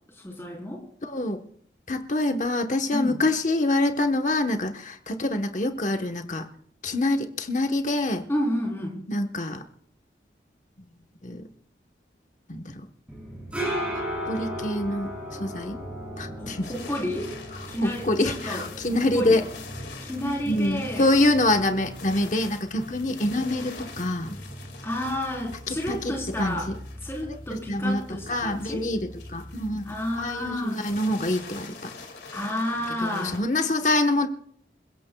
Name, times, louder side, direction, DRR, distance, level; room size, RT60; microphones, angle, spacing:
voice 1, 0.2-0.8 2.9-3.2 8.3-9.0 16.4-17.4 17.7-18.6 18.9-19.4 20.0-21.1 24.8-26.7 27.0-28.0 28.3-28.8 29.9-30.9 32.3-33.4, left 1 dB, 15° left, -1 dB, 3.9 m, -30 dB
voice 2, 1.0-1.4 1.9-6.5 6.8-8.2 9.1-9.6 11.2-11.5 12.5-12.8 14.2-15.1 15.4-15.8 16.2-16.7 17.8-19.4 20.5-24.4 25.7-26.8 27.5-29.9 30.2-31.9 33.0-34.3, left 2 dB, 45° left, 5 dB, 1.1 m, -26 dB
sound 1, 13.1-30.6, equal, 5° right, 6.5 m, -38 dB
sound 2, 16.6-33.4, left 4 dB, 90° left, 2.2 m, -45 dB
28.0 x 16.0 x 2.3 m, 0.63 s
head